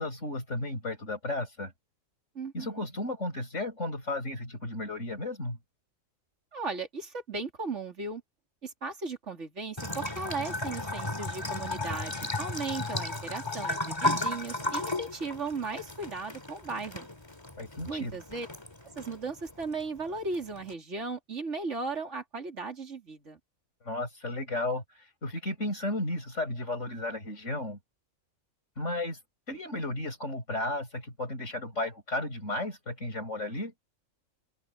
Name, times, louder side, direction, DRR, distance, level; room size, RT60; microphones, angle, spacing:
voice 1, 0.0-1.7 2.5-5.6 17.6-18.2 23.8-27.8 28.8-29.2 29.5-33.7, left 2 dB, 60° left, 7.9 m, -34 dB
voice 2, 2.4-2.8 6.5-8.2 8.6-17.1 17.9-18.5 18.8-23.4, right 3 dB, 60° right, 3.6 m, -36 dB
Bathtub (filling or washing) / Trickle dribble, 9.8-20.7, left 2 dB, 20° left, 2.9 m, -35 dB
omnidirectional pair, 1.4 m